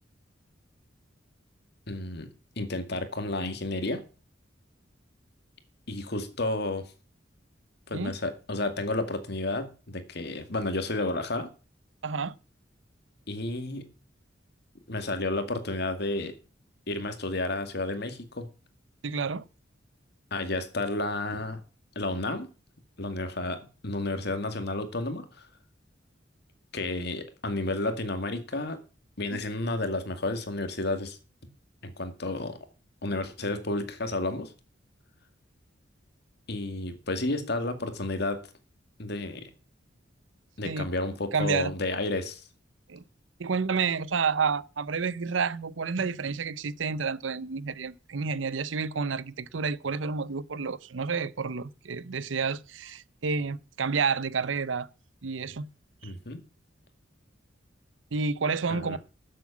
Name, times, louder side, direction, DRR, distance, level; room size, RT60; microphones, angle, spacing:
voice 1, 1.9-2.3 2.6-4.0 5.9-6.9 7.9-11.5 13.3-13.9 14.9-16.4 16.9-18.5 20.3-21.6 22.0-22.5 23.0-25.5 26.7-28.8 29.2-31.2 31.8-32.6 33.0-34.5 36.5-38.4 39.0-39.5 40.6-42.5 56.0-56.4 58.7-59.0, left 2 dB, 60° left, 2.1 m, -31 dB
voice 2, 12.0-12.3 19.0-19.4 40.6-40.8 41.3-41.7 42.9-43.0 43.4-54.9 55.2-55.7 56.0-56.1 58.1-59.0, right 5 dB, 90° right, 0.7 m, -30 dB
12.5 x 7.8 x 7.2 m
head